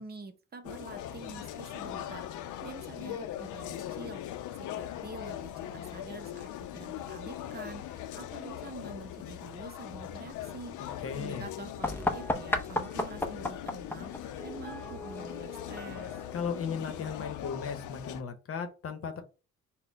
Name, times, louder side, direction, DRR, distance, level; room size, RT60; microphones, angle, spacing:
voice 1, 0.0-16.2, right 4 dB, 30° right, 7 dB, 0.7 m, -47 dB
sound 1, 0.6-18.2, left 11 dB, 85° left, 0.5 m, -41 dB
voice 2, 11.0-11.5 16.3-19.2, left 6 dB, 50° left, 7 dB, 0.9 m, -36 dB
sound 2, 11.8-17.4, left 1 dB, 5° left, 0.5 m, -36 dB
4.1 x 2.2 x 3.8 m, 0.31 s
cardioid pair, 90°, 30 cm